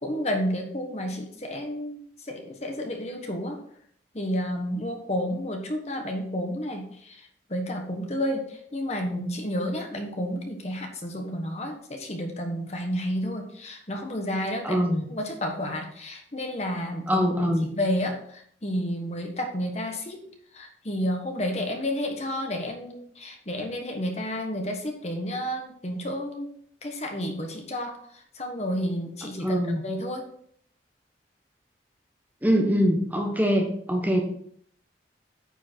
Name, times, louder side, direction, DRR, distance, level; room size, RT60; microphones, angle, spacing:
voice 1, 0.0-3.6 4.1-20.3 20.5-26.5 26.8-30.2, equal, 35° left, 3 dB, 1.3 m, -31 dB
voice 2, 14.6-15.1 17.1-17.7 29.4-29.8 32.4-34.2, equal, 10° right, 1 dB, 1.1 m, -23 dB
9.2 x 5.6 x 4.5 m, 0.63 s
head